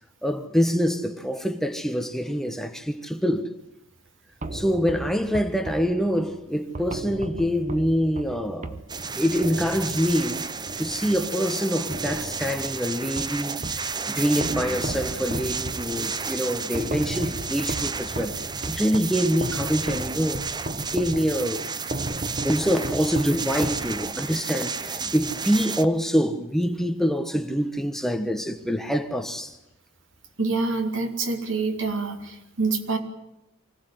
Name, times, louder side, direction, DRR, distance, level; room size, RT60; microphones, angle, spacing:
voice 1, 0.2-3.5 4.5-8.8 9.1-10.5 10.8-18.3 18.7-20.4 20.7-21.7 22.1-22.2 22.4-29.6, equal, ahead, 1.3 m, -25 dB
sound 1, 4.4-11.5 11.9-13.9 14.4-24.3, right 1 dB, 40° right, 1.3 m, -35 dB
sound 2, 8.9-25.8, right 5 dB, 20° right, 0.8 m, -32 dB
voice 2, 30.4-33.0, right 3 dB, 70° right, 3.3 m, -26 dB
25.0 x 17.5 x 9.4 m
head